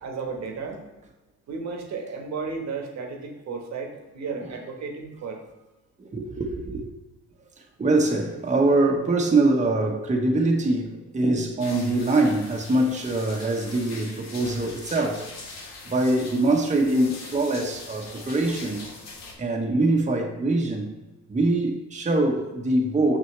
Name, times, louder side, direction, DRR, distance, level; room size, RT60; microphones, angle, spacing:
voice 1, 0.0-0.8 1.5-5.4, right 4 dB, 65° right, 3 dB, 1.3 m, -33 dB
voice 2, 6.0-6.9 7.8-15.3 15.9-18.8 19.4-20.9 21.3-23.2, right 2 dB, 25° right, 1 dB, 1.1 m, -23 dB
sound 1, 11.6-19.3, left 3 dB, 60° left, 1.6 m, -42 dB
6.4 x 6.1 x 3.2 m, 1.1 s
cardioid pair, 90°, 30 cm